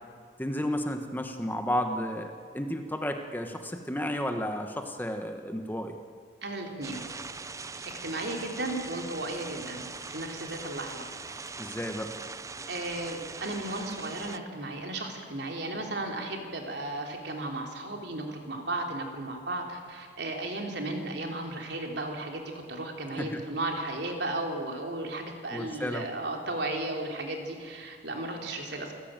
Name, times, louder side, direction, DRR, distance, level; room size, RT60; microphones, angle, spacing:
voice 1, 0.4-6.0 11.6-12.1 23.2-23.4 25.5-26.1, equal, 10° left, 5 dB, 1.4 m, -32 dB
voice 2, 6.4-7.0 8.0-11.0 12.7-28.9, right 2 dB, 65° right, 2 dB, 3.6 m, -35 dB
sound 1, 6.8-14.4, right 4 dB, 15° right, 0.6 m, -41 dB
27.5 x 15.5 x 9.1 m, 2.1 s
head